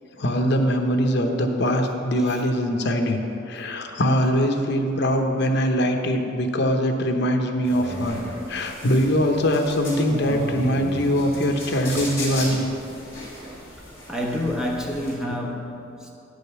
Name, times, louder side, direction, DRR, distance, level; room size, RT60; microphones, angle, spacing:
voice 1, 0.2-3.2 3.5-8.2 8.5-12.6, equal, 60° left, 4 dB, 0.9 m, -22 dB
voice 2, 2.2-2.5 13.8-16.1, left 1 dB, 5° right, -2 dB, 1.1 m, -29 dB
sound 1, 7.6-15.1, equal, 15° left, 2.5 m, -35 dB
9.9 x 5.3 x 6.8 m, 2.8 s
head